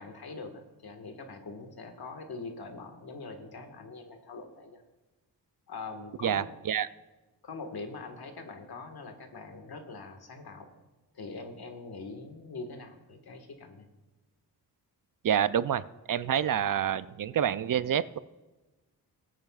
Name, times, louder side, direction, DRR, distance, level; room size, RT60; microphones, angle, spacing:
voice 1, 0.0-4.8 5.7-6.5 7.4-10.7 11.1-13.8, left 3 dB, 65° left, 5 dB, 1.7 m, -43 dB
voice 2, 6.2-6.9 15.2-15.8 16.1-18.2, right 9 dB, 55° right, 15 dB, 0.5 m, -27 dB
21.0 x 9.0 x 2.4 m, 1.2 s
wide cardioid pair, 115°, 40 cm